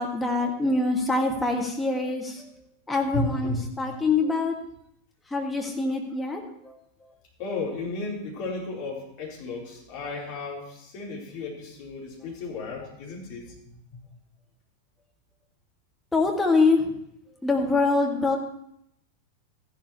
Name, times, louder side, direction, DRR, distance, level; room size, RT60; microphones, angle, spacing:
voice 1, 0.0-2.5 2.9-4.5 5.3-6.7 16.1-16.9 17.4-18.4, left 3 dB, 10° left, 0 dB, 2.1 m, -24 dB
voice 2, 3.1-3.7 7.4-13.5 13.9-14.0, left 3 dB, 45° left, -3 dB, 4.2 m, -34 dB
14.5 x 11.5 x 3.2 m, 0.73 s
figure-of-eight pair, 90°, 0 cm